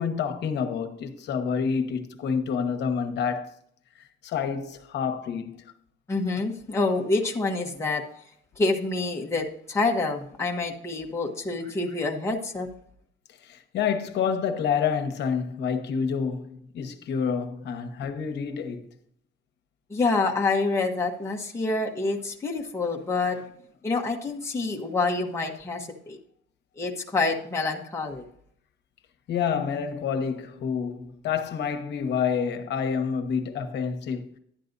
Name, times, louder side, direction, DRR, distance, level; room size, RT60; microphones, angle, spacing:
voice 1, 0.0-3.5 4.2-5.7 13.4-18.9 29.3-34.3, left 6 dB, 60° left, 1.1 m, -28 dB
voice 2, 6.1-8.1 8.6-12.7 19.9-23.4 23.8-26.2 26.8-28.2, left 3 dB, 15° left, 1.1 m, -27 dB
11.5 x 9.4 x 2.6 m
cardioid pair, 170°, 20 cm